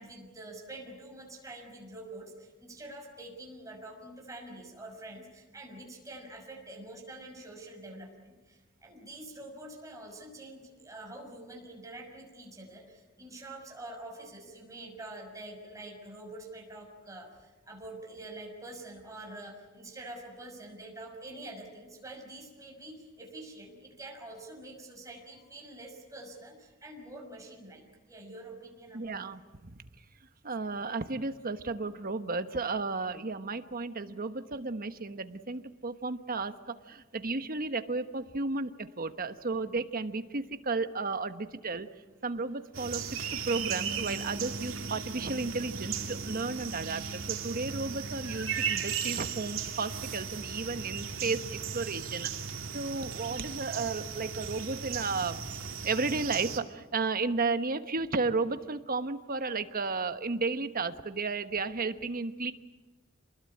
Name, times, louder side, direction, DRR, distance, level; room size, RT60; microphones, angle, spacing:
voice 1, 0.0-29.2, right 2 dB, 15° right, 1 dB, 6.1 m, -46 dB
voice 2, 28.9-29.8 30.4-41.9 42.2-43.0 43.3-52.3 52.7-55.4 55.8-62.5, right 3 dB, 45° right, 9 dB, 1.2 m, -33 dB
sound 1, 42.7-56.6, right 6 dB, 85° right, 2.6 m, -36 dB
27.5 x 20.5 x 8.6 m, 1.2 s
head